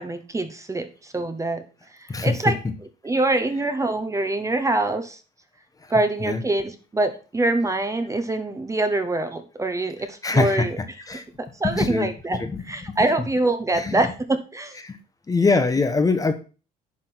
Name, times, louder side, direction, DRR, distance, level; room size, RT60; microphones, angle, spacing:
voice 1, 0.0-1.6 2.0-2.6 3.0-5.2 5.9-10.8 11.6-14.8, right 2 dB, 20° right, 8 dB, 1.1 m, -24 dB
voice 2, 10.2-10.7 11.1-11.2 11.8-12.1 12.4-12.6 12.9-13.0 13.7-14.0 14.8-15.0 15.3-16.3, left 3 dB, 20° left, 9 dB, 1.1 m, -22 dB
10.5 x 3.7 x 6.1 m, 0.34 s
cardioid pair, 110°, 17 cm